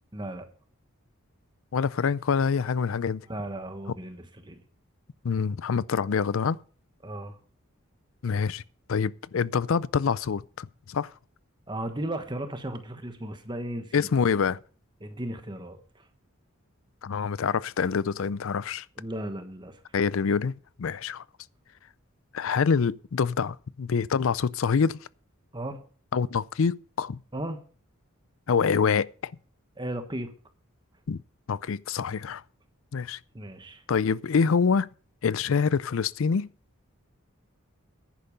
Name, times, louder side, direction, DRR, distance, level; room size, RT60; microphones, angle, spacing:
voice 1, 0.1-0.5 3.3-4.6 7.0-7.4 11.7-14.1 15.0-16.1 19.0-19.8 25.5-25.8 27.3-27.6 29.8-30.3 33.3-33.8, right 1 dB, 20° right, 1.2 m, -35 dB
voice 2, 1.7-3.2 5.2-6.6 8.2-8.6 8.9-11.1 13.9-14.6 17.0-18.8 19.9-20.5 20.8-21.2 22.3-25.0 26.1-27.2 28.5-29.3 31.1-31.2 31.5-32.4 32.9-33.2 33.9-34.9 35.2-36.5, left 6 dB, 70° left, 0.4 m, -26 dB
10.5 x 9.9 x 5.4 m
head